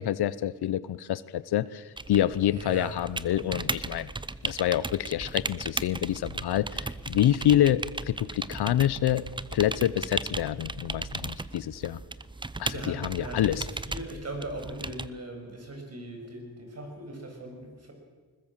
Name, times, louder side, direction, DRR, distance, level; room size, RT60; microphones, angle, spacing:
voice 1, 0.0-4.1 4.4-9.2 9.5-12.0 12.6-13.6, left 11 dB, 70° left, 18 dB, 0.8 m, -27 dB
sound 1, 2.0-15.1, right 3 dB, 10° right, 0.7 m, -36 dB
voice 2, 2.5-2.9 12.7-17.9, right 1 dB, 40° right, 3 dB, 6.6 m, -40 dB
20.5 x 20.5 x 7.4 m, 1.4 s
cardioid pair, 90°, 40 cm